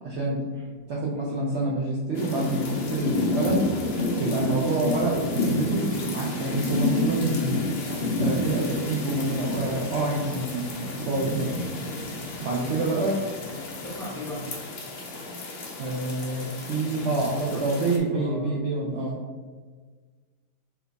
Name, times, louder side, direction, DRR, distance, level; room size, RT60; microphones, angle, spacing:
voice 1, 0.0-0.4 0.9-3.7 4.2-7.6 8.2-11.5 12.4-13.2 15.8-19.2, right 2 dB, 90° right, -3 dB, 0.6 m, -27 dB
sound 1, 2.1-18.0, left 2 dB, 65° left, 0.6 m, -30 dB
voice 2, 12.5-12.9 13.3-13.6 13.8-14.6 17.1-17.7 18.1-18.6, equal, 5° left, -6 dB, 0.5 m, -39 dB
4.5 x 2.3 x 3.9 m, 1.4 s
omnidirectional pair, 1.8 m